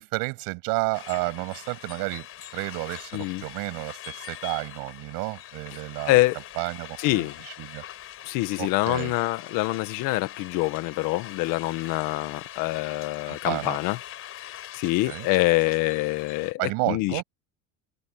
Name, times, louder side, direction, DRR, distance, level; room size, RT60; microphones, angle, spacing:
voice 1, 0.0-2.3 2.5-6.2 6.6-7.8 8.6-9.1 13.3-13.8 15.1-15.3 16.6-17.2, right 28 dB, 85° right, 7.4 m, -31 dB
sound 1, 0.9-16.5, left 12 dB, 40° left, 5.8 m, -42 dB
voice 2, 3.1-3.4 6.1-6.4 7.0-7.4 8.3-14.0 14.2-17.2, left 19 dB, 75° left, 1.7 m, -25 dB
cardioid pair, 170°, 33 cm